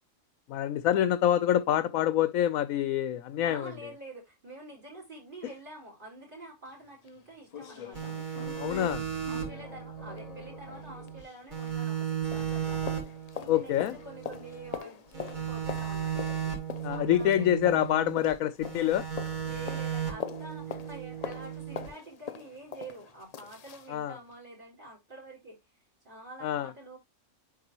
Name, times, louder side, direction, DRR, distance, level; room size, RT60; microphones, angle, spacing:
voice 1, 0.5-3.7 8.5-9.0 13.5-14.0 16.8-19.0 23.9-24.2 26.4-26.7, left 11 dB, 85° left, 1.0 m, -26 dB
voice 2, 3.4-8.1 9.3-16.5 16.9-17.8 19.4-25.6 26.0-27.0, right 2 dB, 40° right, 5.0 m, -47 dB
sound 1, 6.7-6.8 7.1-7.2 7.5-12.1 12.3-23.9 24.3-24.4, left 7 dB, 60° left, 0.4 m, -43 dB
sound 2, 7.9-11.2 11.5-14.8 15.1-18.3 18.6-21.9, right 8 dB, 85° right, 2.9 m, -36 dB
10.0 x 4.3 x 3.0 m
omnidirectional pair, 1.4 m